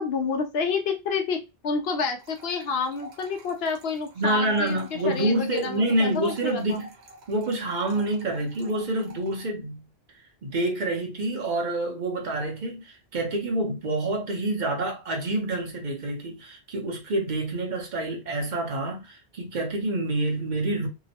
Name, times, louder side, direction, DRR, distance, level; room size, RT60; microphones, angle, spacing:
voice 1, 0.0-6.8, left 5 dB, 70° left, 0.9 m, -29 dB
sound 1, 2.2-9.4, right 1 dB, 80° right, 1.1 m, -49 dB
voice 2, 4.2-6.9 7.3-9.8 10.4-20.9, right 1 dB, 50° right, 0.8 m, -27 dB
2.9 x 2.1 x 2.7 m
omnidirectional pair, 1.1 m